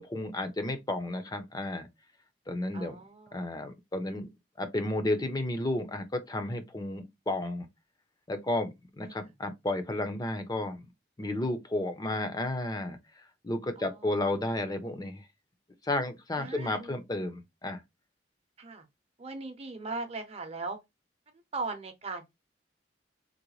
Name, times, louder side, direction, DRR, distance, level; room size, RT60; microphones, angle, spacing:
voice 1, 0.0-1.9 2.5-3.0 3.3-4.3 4.6-7.7 8.3-10.8 11.2-13.0 13.4-15.2 15.8-17.8, left 1 dB, 20° left, 0.6 m, -32 dB
voice 2, 2.7-3.5 9.0-9.3 13.8-14.4 16.3-17.0 18.6-18.9 19.2-20.8 21.3-22.4, right 3 dB, 35° right, 0.7 m, -39 dB
3.8 x 2.1 x 3.1 m
head